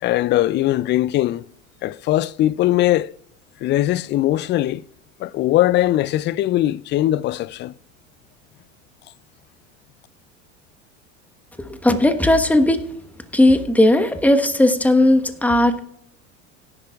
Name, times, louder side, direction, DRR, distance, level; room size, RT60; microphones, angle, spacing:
voice 1, 0.0-1.4 1.8-3.1 3.6-4.8 5.2-7.7, left 14 dB, 30° left, 0.4 m, -20 dB
voice 2, 11.6-12.8 13.3-15.8, left 1 dB, 5° left, 1.3 m, -16 dB
17.5 x 10.5 x 2.4 m
hypercardioid pair, 85°, 38 cm